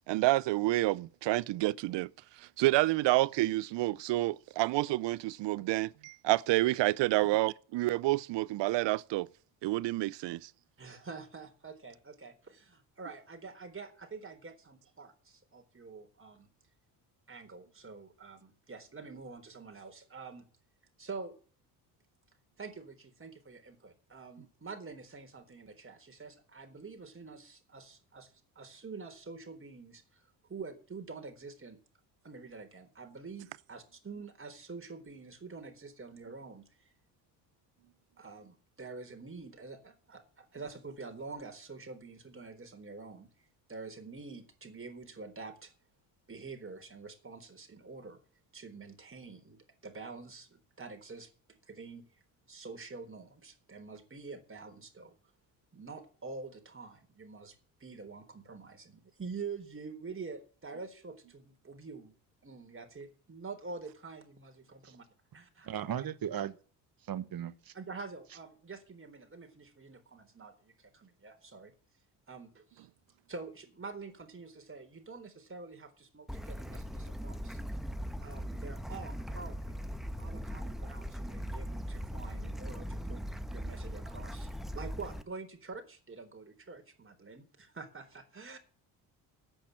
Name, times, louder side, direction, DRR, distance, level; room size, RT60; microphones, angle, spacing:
voice 1, 0.1-2.1 2.6-9.3 9.6-10.5, right 18 dB, 60° right, 0.7 m, -29 dB
voice 2, 10.8-16.5 17.3-20.4 21.0-21.3 22.6-30.2 30.5-31.8 32.2-36.7 38.2-43.3 43.7-45.7 46.3-48.2 48.5-51.3 51.7-52.1 52.5-55.1 55.7-62.1 62.4-65.0 65.3-65.7 67.7-71.7 72.3-72.9 73.3-77.6 78.2-79.9 80.2-88.6, right 4 dB, 25° right, 4.0 m, -47 dB
voice 3, 65.6-66.6 67.1-67.7, right 9 dB, 45° right, 1.4 m, -36 dB
Bird / Stream, 76.3-85.2, equal, ahead, 1.4 m, -39 dB
10.0 x 9.0 x 7.6 m
hypercardioid pair, 65°, 48 cm